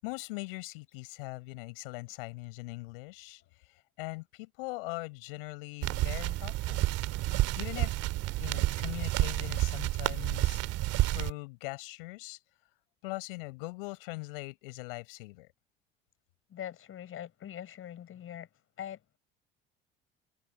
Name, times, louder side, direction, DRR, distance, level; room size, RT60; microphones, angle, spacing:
voice 1, 0.0-3.4 4.0-6.9 7.6-7.9 8.4-10.6 11.0-12.4 13.0-15.5, left 26 dB, 70° left, 7.8 m, -41 dB
sound 1, 5.8-11.3, right 17 dB, 55° right, 2.5 m, -30 dB
voice 2, 16.5-18.5 18.8-19.2, left 10 dB, 45° left, 7.0 m, -42 dB
figure-of-eight pair, 60°, 29 cm